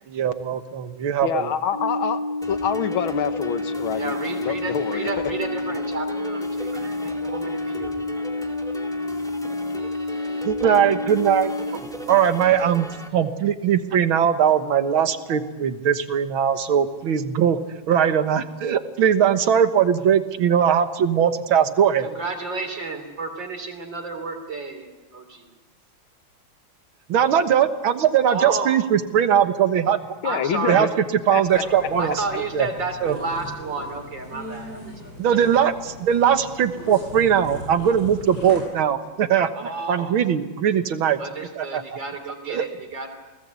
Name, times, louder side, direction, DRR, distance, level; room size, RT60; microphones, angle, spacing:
voice 1, 0.1-1.5 10.4-11.5 12.1-17.6 17.9-22.1 27.1-30.0 30.7-30.9 31.3-32.2 32.5-32.7 33.0-33.2 35.2-39.5 39.9-41.2 41.6-42.0 42.5-42.7, right 8 dB, 85° right, 9 dB, 2.1 m, -20 dB
voice 2, 1.2-2.2 2.5-4.2 4.4-5.3 30.2-30.9 31.3-31.9, left 8 dB, 85° left, 10 dB, 2.0 m, -26 dB
sound 1, 1.7-11.7, left 2 dB, 40° left, 4.8 m, -29 dB
sound 2, 2.4-13.1, equal, ahead, 2.1 m, -39 dB
voice 3, 4.0-8.1 22.0-25.5 28.3-28.7 30.2-30.9 32.0-35.1 39.6-40.1 41.2-43.1, right 3 dB, 65° right, 5 dB, 4.1 m, -32 dB
sound 3, 31.5-38.6, left 1 dB, 55° left, 7.9 m, -39 dB
29.5 x 19.0 x 8.3 m, 1.2 s
omnidirectional pair, 2.2 m